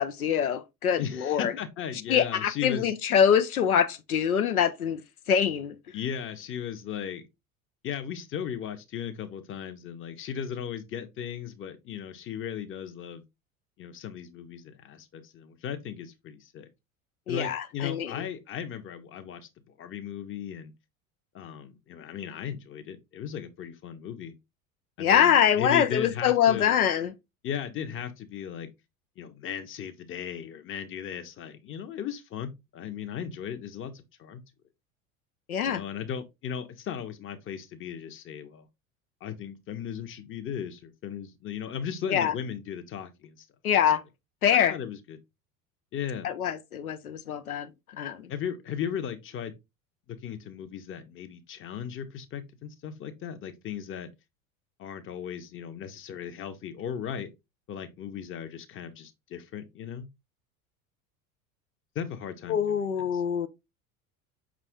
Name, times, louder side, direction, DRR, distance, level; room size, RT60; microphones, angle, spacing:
voice 1, 0.0-1.5 2.1-5.0 5.3-5.8 17.3-18.3 25.0-27.1 35.5-35.8 42.1-42.3 43.6-44.0 44.4-44.8 46.2-48.3 62.5-63.5, left 8 dB, 90° left, 0.5 m, -24 dB
voice 2, 1.0-2.9 5.9-7.2 7.8-13.2 13.8-16.7 17.3-19.5 19.8-20.7 21.3-24.3 25.0-26.8 27.4-28.7 29.2-34.4 35.6-38.7 39.2-43.5 44.5-45.2 45.9-46.3 48.3-49.5 50.1-54.1 54.8-57.3 57.7-60.1 61.9-63.2, left 8 dB, 30° left, 0.8 m, -37 dB
5.5 x 2.5 x 3.4 m
figure-of-eight pair, 75°, 42 cm